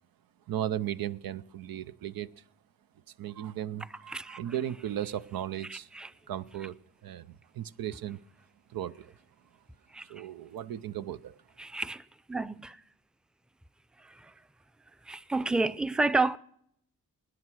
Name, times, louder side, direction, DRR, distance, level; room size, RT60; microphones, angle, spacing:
voice 1, 0.5-2.4 3.2-5.9 6.3-6.8 7.0-8.2 8.7-9.1 10.1-11.4, right 11 dB, 90° right, 0.6 m, -36 dB
voice 2, 5.7-6.1 9.9-10.1 11.6-12.0 12.3-12.8 14.0-14.3 15.1-16.4, right 3 dB, ahead, 0.5 m, -30 dB
20.0 x 9.8 x 6.2 m
cardioid pair, 55°, 34 cm